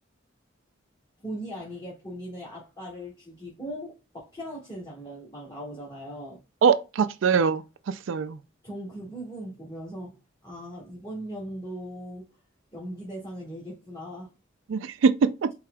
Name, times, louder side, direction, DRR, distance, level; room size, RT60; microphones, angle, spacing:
voice 1, 1.2-6.4 8.6-10.2 10.4-12.4 12.7-14.3, equal, 25° left, 1.7 m, -39 dB
voice 2, 6.6-8.4 14.7-15.5, right 6 dB, 75° right, 0.4 m, -23 dB
4.8 x 3.8 x 2.2 m
head